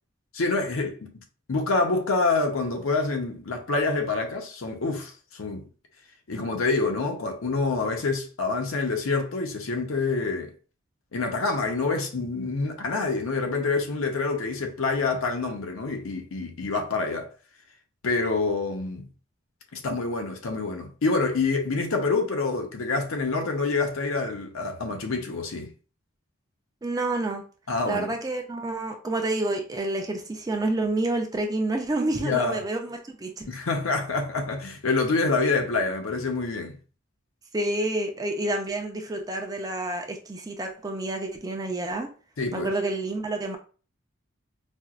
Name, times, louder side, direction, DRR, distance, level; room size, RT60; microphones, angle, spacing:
voice 1, 0.3-1.1 1.5-5.7 6.3-10.5 11.1-17.3 18.0-19.1 19.7-25.7 27.7-28.1 32.2-32.6 33.5-36.8 42.4-42.7, left 3 dB, 80° left, 0.7 m, -27 dB
voice 2, 26.8-27.4 27.9-33.5 37.5-42.1 42.5-43.6, right 2 dB, 20° right, 0.4 m, -29 dB
4.3 x 2.0 x 2.4 m
head